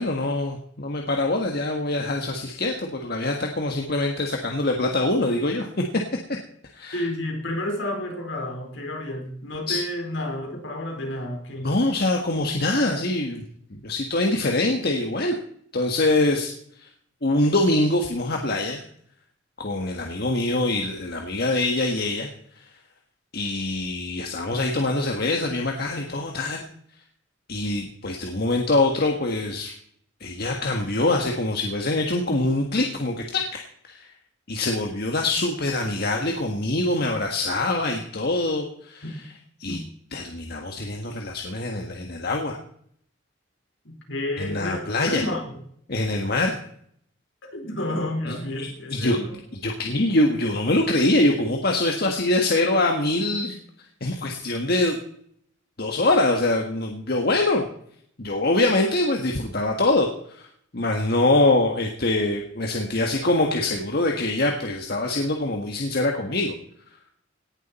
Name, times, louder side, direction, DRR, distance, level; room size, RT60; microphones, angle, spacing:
voice 1, 0.0-5.7 6.7-7.0 9.7-9.8 11.6-13.4 13.7-15.3 15.7-16.5 16.8-16.9 17.2-18.8 19.6-22.3 22.6-22.7 23.3-26.7 27.5-29.7 30.2-33.6 33.9-34.1 34.5-39.0 39.6-39.8 40.1-42.6 44.4-45.2 45.9-46.6 48.3-49.2 49.6-53.6 54.0-55.0 55.8-57.7 58.2-60.1 60.4-60.5 60.7-66.5, left 2 dB, 55° left, 2 dB, 1.6 m, -24 dB
voice 2, 6.9-11.7 39.7-39.9 43.8-45.6 47.5-49.4, left 1 dB, 75° left, 2 dB, 4.3 m, -30 dB
18.0 x 11.0 x 4.4 m, 0.64 s
head